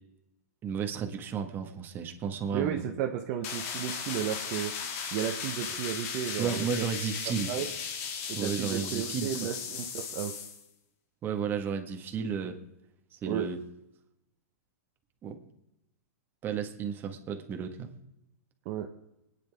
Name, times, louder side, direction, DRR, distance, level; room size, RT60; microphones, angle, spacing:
voice 1, 0.6-2.9 6.4-7.5 8.4-9.3 11.2-12.6 13.1-13.6 15.2-15.4 16.4-17.9, right 7 dB, 25° right, 4 dB, 1.6 m, -33 dB
voice 2, 2.5-4.7 5.1-6.8 7.5-7.7 8.3-10.3 13.3-13.5 18.6-18.9, right 10 dB, 45° right, 3 dB, 1.1 m, -33 dB
sound 1, 3.4-10.6, left 6 dB, 55° left, 2.2 m, -36 dB
26.5 x 9.8 x 3.6 m, 0.88 s
hypercardioid pair, 135°, 9 cm